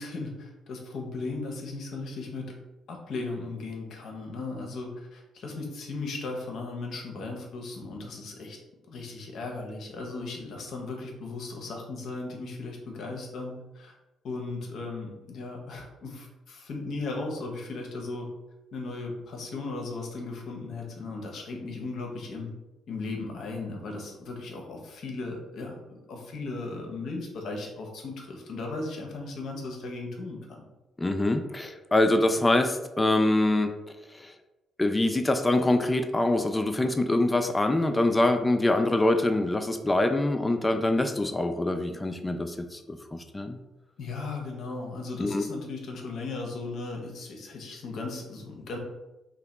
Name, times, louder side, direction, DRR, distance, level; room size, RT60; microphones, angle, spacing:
voice 1, 0.0-2.5 2.9-8.6 8.9-14.0 14.2-18.3 18.7-22.5 22.9-30.6 44.0-48.8, left 3 dB, 60° left, 1 dB, 0.6 m, -36 dB
voice 2, 31.0-33.7 34.2-34.3 34.8-43.6 45.2-45.4, left 2 dB, 20° left, 7 dB, 0.3 m, -24 dB
2.7 x 2.1 x 3.2 m, 1.0 s
hypercardioid pair, 45°, 0 cm